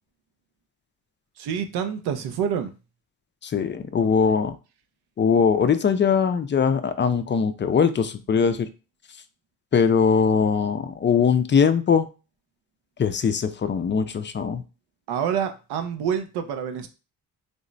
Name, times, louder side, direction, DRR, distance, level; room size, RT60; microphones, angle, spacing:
voice 1, 1.4-2.7 15.1-16.9, right 8 dB, 85° right, 0.6 m, -27 dB
voice 2, 3.4-4.5 5.2-8.7 9.7-12.1 13.0-14.6, left 6 dB, 30° left, 0.4 m, -21 dB
3.4 x 2.0 x 3.8 m
cardioid pair, 80°, 38 cm